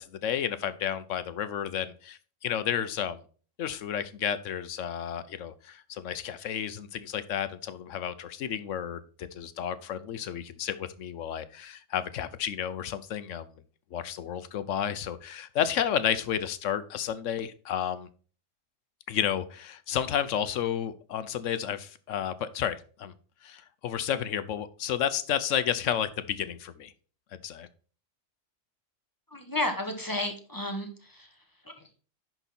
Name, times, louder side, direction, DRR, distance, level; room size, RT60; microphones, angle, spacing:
voice 1, 0.0-3.2 3.6-13.5 13.9-18.1 19.1-23.1 23.4-26.9 27.4-27.7, left 9 dB, 80° left, 13 dB, 1.1 m, -31 dB
voice 2, 29.3-31.3, left 1 dB, 15° left, 4 dB, 1.3 m, -32 dB
10.5 x 4.0 x 4.2 m, 0.40 s
omnidirectional pair, 1.3 m